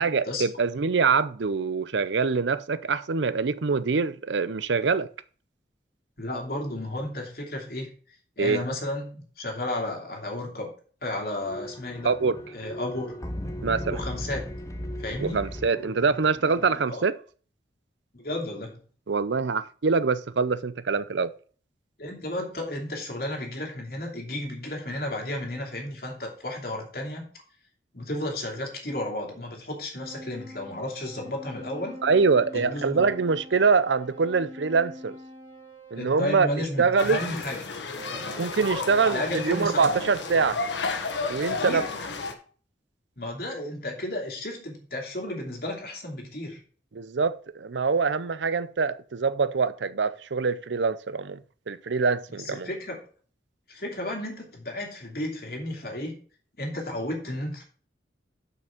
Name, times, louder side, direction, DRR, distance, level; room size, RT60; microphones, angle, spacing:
voice 1, 0.0-5.1 8.4-8.6 12.0-12.4 13.6-14.0 15.2-17.2 19.1-21.3 32.0-35.2 35.9-36.5 36.8-37.2 38.4-40.6 41.3-41.8 46.9-51.4 51.7-52.7, right 5 dB, 80° right, 0.6 m, -24 dB
voice 2, 6.2-7.9 8.4-10.7 11.0-12.1 12.5-13.2 13.9-14.5 15.0-15.5 16.9-17.1 18.1-18.8 22.0-27.3 27.9-32.0 32.5-33.1 36.0-37.6 39.1-40.0 41.5-41.8 43.2-46.6 52.6-53.0 53.7-56.2 56.6-57.6, left 1 dB, 55° left, 2.7 m, -33 dB
sound 1, 11.4-16.8, equal, 15° left, 0.9 m, -37 dB
sound 2, 30.0-36.0 38.0-41.4, right 1 dB, 30° right, 4.4 m, -44 dB
sound 3, 37.0-42.3, left 4 dB, 80° left, 1.3 m, -32 dB
6.8 x 6.2 x 5.9 m
head